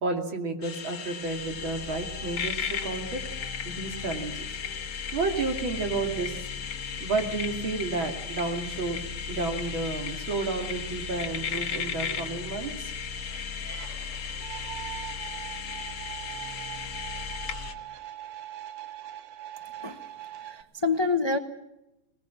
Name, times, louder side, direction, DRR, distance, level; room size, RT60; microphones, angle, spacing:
voice 1, 0.0-3.2 3.6-4.5 5.1-6.4 7.0-9.0 9.3-12.9, right 3 dB, 65° right, 3 dB, 3.3 m, -31 dB
sound 1, 0.6-17.7, left 7 dB, 65° left, 2.1 m, -36 dB
sound 2, 1.2-17.7, left 5 dB, ahead, 5.0 m, -42 dB
sound 3, 10.3-20.6, right 11 dB, 90° right, 1.9 m, -43 dB
voice 2, 19.6-20.0 20.4-21.4, left 4 dB, 25° left, 7 dB, 0.6 m, -27 dB
21.0 x 20.0 x 7.3 m, 0.91 s
omnidirectional pair, 2.3 m